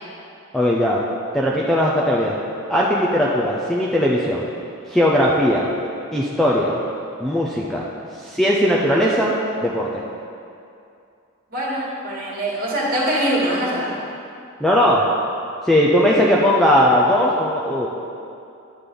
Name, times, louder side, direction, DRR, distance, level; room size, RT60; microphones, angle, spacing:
voice 1, 0.5-1.0 1.3-2.4 2.7-4.4 4.9-5.7 6.1-6.8 7.2-7.9 8.2-10.0 14.6-15.1 15.6-17.9, equal, ahead, -4 dB, 0.5 m, -18 dB
voice 2, 11.5-13.9, right 1 dB, 45° right, -6 dB, 2.1 m, -23 dB
9.7 x 3.9 x 6.8 m, 2.6 s
head